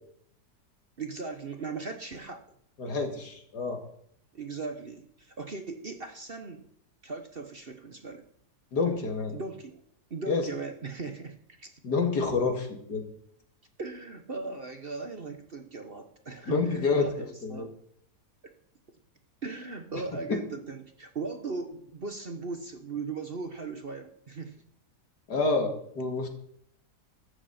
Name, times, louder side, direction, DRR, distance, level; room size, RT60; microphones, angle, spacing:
voice 1, 1.0-2.4 4.3-6.6 7.0-8.2 9.3-9.8 10.1-11.8 13.8-17.7 19.4-24.6, right 4 dB, 40° right, 6 dB, 1.1 m, -38 dB
voice 2, 2.8-3.8 8.7-9.3 10.3-10.4 11.8-13.0 16.5-17.7 20.3-20.4 25.3-26.3, left 4 dB, 75° left, 3 dB, 2.8 m, -28 dB
15.5 x 13.0 x 4.3 m, 0.68 s
omnidirectional pair, 1.8 m